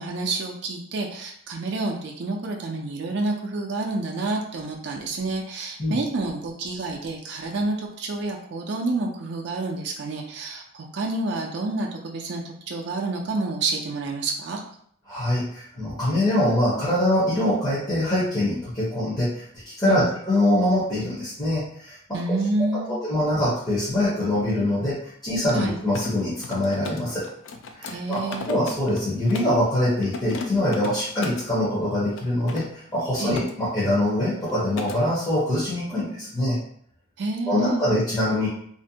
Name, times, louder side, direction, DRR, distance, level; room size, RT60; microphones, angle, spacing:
voice 1, 0.0-14.6 19.8-20.1 22.1-22.9 25.5-25.8 27.8-28.5 33.2-33.4 37.2-37.9, right 3 dB, 55° right, 0 dB, 0.3 m, -29 dB
voice 2, 15.1-22.0 22.3-22.4 22.7-27.3 27.8-28.2 28.5-36.6 37.5-38.5, left 1 dB, 20° left, -10 dB, 0.6 m, -24 dB
Mechanisms, 25.6-29.6 30.0-31.5 32.1-33.5 33.8-34.2 34.4-35.0, left 3 dB, 65° left, 0.3 m, -36 dB
2.5 x 2.1 x 2.7 m, 0.65 s
head